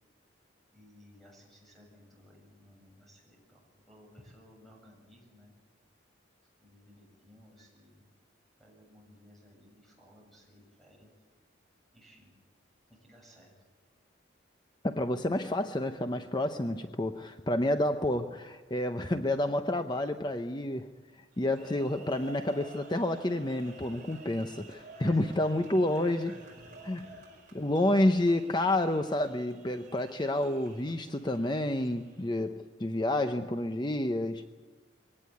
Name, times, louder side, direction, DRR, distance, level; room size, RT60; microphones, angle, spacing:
voice 1, 0.7-5.5 6.6-8.1 8.6-11.1 11.9-12.3 12.9-13.5 25.0-27.6, equal, ahead, -1 dB, 7.5 m, -57 dB
voice 2, 14.8-20.9 21.4-26.3 26.8-27.0 27.5-34.5, left 1 dB, 20° left, 8 dB, 0.7 m, -29 dB
sound 1, 21.3-32.4, right 2 dB, 40° right, 5.1 m, -52 dB
22.5 x 18.5 x 9.5 m, 1.4 s
head